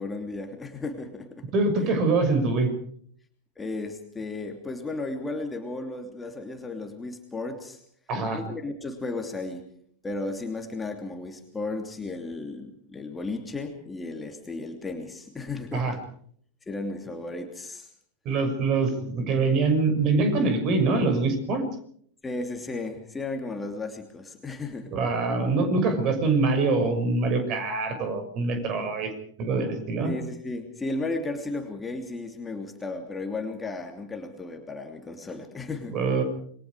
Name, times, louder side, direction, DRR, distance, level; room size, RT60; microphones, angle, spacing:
voice 1, 0.0-1.4 1.8-1.9 3.6-7.8 8.3-9.6 10.0-16.0 16.7-17.9 22.2-24.9 30.0-36.0, left 3 dB, 10° left, 4 dB, 3.0 m, -34 dB
voice 2, 1.5-2.7 8.1-8.4 15.7-15.9 18.2-21.6 24.9-29.1 29.4-30.1 35.9-36.2, right 3 dB, 35° right, 7 dB, 6.4 m, -24 dB
28.5 x 23.0 x 4.9 m, 0.62 s
figure-of-eight pair, 90°, 0 cm